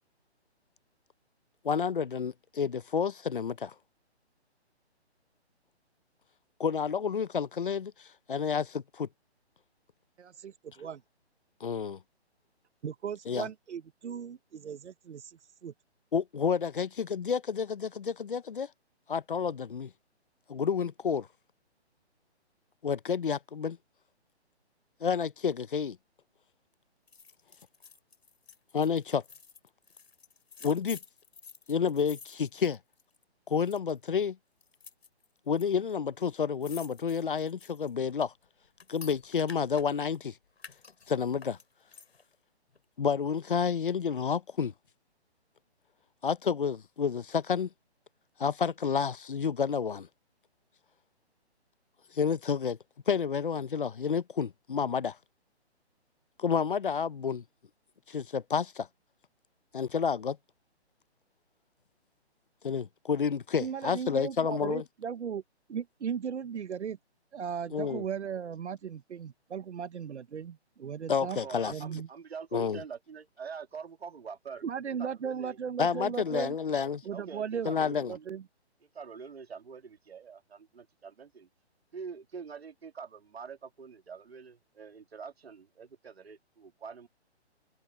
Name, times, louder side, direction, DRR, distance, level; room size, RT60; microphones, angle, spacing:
voice 1, 1.6-3.7 6.6-9.1 11.6-12.0 13.3-13.5 16.1-18.7 19.1-19.9 20.5-21.3 22.8-23.8 25.0-26.0 28.7-29.2 30.6-31.0 31.7-32.8 33.5-34.4 35.5-38.3 38.9-40.3 41.1-41.6 43.0-44.7 46.2-47.7 48.4-50.1 52.1-52.8 53.1-55.2 56.4-57.4 58.1-58.9 59.7-60.4 62.6-64.8 67.7-68.0 71.1-71.7 72.5-72.8 75.8-77.0 77.6-78.1, left 6 dB, 50° left, 0.8 m, -30 dB
voice 2, 10.2-11.0 12.8-15.7 63.6-65.4 65.7-67.0 67.3-71.4 71.7-72.1 74.6-76.6 77.0-77.7 78.1-78.4, right 7 dB, 85° right, 0.9 m, -37 dB
sound 1, 27.1-33.2 33.5-34.1 34.6-35.6 35.9-36.0 36.2-40.2 40.6-42.3 42.7-42.8, left 5 dB, 65° left, 6.8 m, -51 dB
voice 3, 71.3-74.6 75.0-75.6 76.3-76.5 77.1-78.3 78.9-81.5 81.9-87.1, right 6 dB, 65° right, 2.1 m, -45 dB
hypercardioid pair, 175°, 33 cm